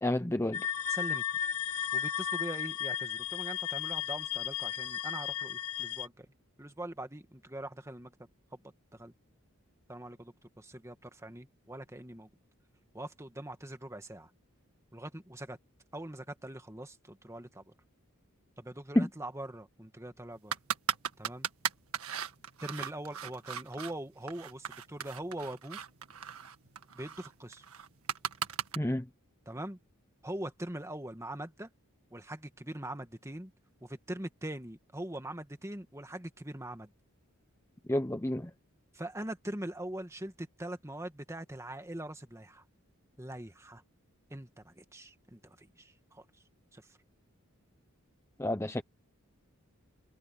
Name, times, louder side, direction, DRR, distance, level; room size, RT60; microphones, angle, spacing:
voice 1, 0.0-0.7 18.9-19.1 28.8-29.0 37.9-38.5 48.4-48.8, left 1 dB, 10° left, 0.7 m, -29 dB
sound 1, 0.5-6.1, left 9 dB, 90° left, 1.0 m, -34 dB
voice 2, 0.9-1.2 1.9-6.3 6.6-8.1 8.5-8.6 9.0-9.1 9.9-12.3 12.9-14.3 14.9-15.6 15.9-17.6 18.6-20.5 21.2-21.5 22.6-25.8 26.9-27.6 29.5-29.8 30.2-31.7 32.1-33.5 33.8-36.9 38.9-42.6 43.2-43.8 44.3-46.2 46.7-46.8, right 1 dB, 15° right, 1.8 m, -42 dB
sound 2, 20.5-23.9 24.3-28.8, right 7 dB, 80° right, 1.7 m, -37 dB
head